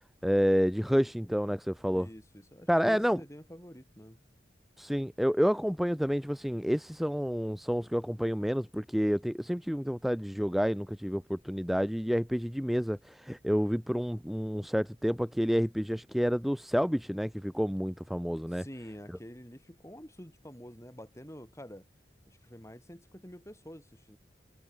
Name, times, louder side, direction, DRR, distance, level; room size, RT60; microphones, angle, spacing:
voice 1, 0.2-2.1 2.7-3.2 4.8-18.6, equal, ahead, 0.7 m, -29 dB
voice 2, 1.9-4.2 18.5-21.9 22.3-24.2, equal, 15° left, 4.6 m, -48 dB
head